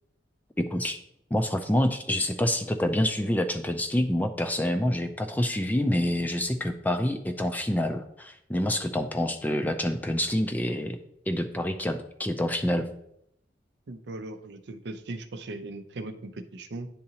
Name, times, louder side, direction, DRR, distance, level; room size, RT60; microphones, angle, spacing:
voice 1, 0.6-1.0 1.3-11.0 11.3-12.9, left 1 dB, 10° left, 6 dB, 0.4 m, -27 dB
voice 2, 13.9-16.9, right 2 dB, 70° right, 9 dB, 0.5 m, -38 dB
9.7 x 3.9 x 2.8 m, 0.76 s
head